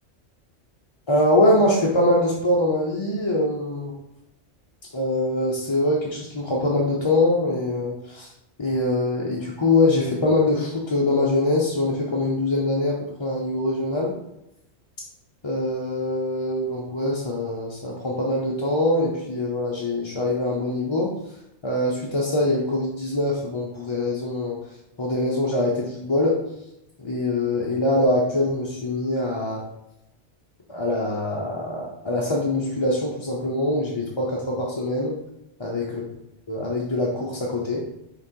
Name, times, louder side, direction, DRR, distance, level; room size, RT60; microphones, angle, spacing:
voice 1, 1.1-3.9 4.9-8.3 8.6-14.1 15.4-21.1 21.6-24.6 25.0-26.4 27.0-29.6 30.7-35.2 35.6-36.0 36.5-37.8, left 1 dB, 25° left, -3 dB, 0.7 m, -23 dB
6.3 x 3.9 x 4.6 m, 0.88 s
omnidirectional pair, 1.3 m